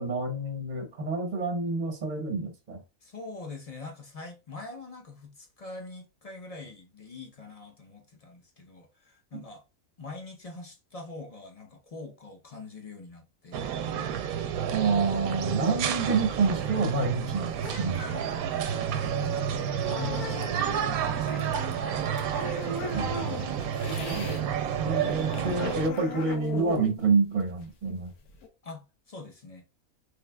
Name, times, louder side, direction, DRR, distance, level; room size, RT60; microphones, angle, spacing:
voice 1, 0.0-2.8 9.3-9.4 14.7-18.0 22.9-23.6 24.1-24.4 24.8-28.1, right 4 dB, 40° right, 0.7 m, -28 dB
voice 2, 3.0-9.6 10.0-13.7 15.5-15.7 18.1-19.3 19.8-22.0 28.6-29.6, left 3 dB, 40° left, 0.5 m, -44 dB
sound 1, 13.5-25.9, right 8 dB, 85° right, 1.1 m, -30 dB
sound 2, 16.3-24.4 24.7-28.5, left 4 dB, 90° left, 1.3 m, -39 dB
4.7 x 3.3 x 2.2 m
omnidirectional pair, 1.5 m